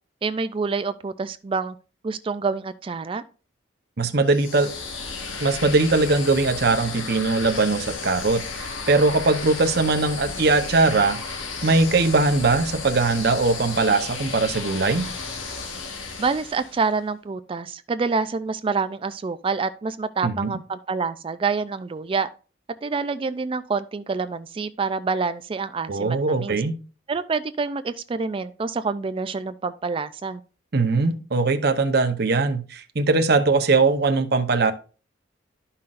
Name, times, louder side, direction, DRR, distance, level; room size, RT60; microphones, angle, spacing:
voice 1, 0.2-1.8 2.0-3.2 16.2-22.3 22.8-26.6 27.1-30.4, right 4 dB, 30° right, 0.3 m, -27 dB
voice 2, 4.0-4.7 5.4-11.2 11.6-15.1 20.2-20.5 25.9-26.8 30.7-34.7, right 3 dB, 55° right, 0.8 m, -21 dB
sound 1, 4.3-16.9, left 4 dB, 90° left, 1.5 m, -34 dB
12.0 x 5.7 x 2.5 m
head